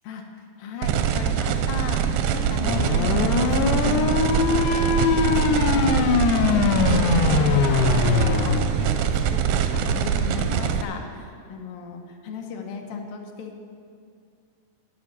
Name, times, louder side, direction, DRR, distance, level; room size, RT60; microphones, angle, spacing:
voice 1, 0.0-7.1 7.4-13.6, left 5 dB, 70° left, 3 dB, 2.4 m, -36 dB
sound 1, 0.8-10.8, right 8 dB, 80° right, 2.1 m, -23 dB
sound 2, 2.6-8.6, left 6 dB, 90° left, 2.8 m, -22 dB
12.5 x 6.0 x 9.2 m, 2.2 s
omnidirectional pair, 4.7 m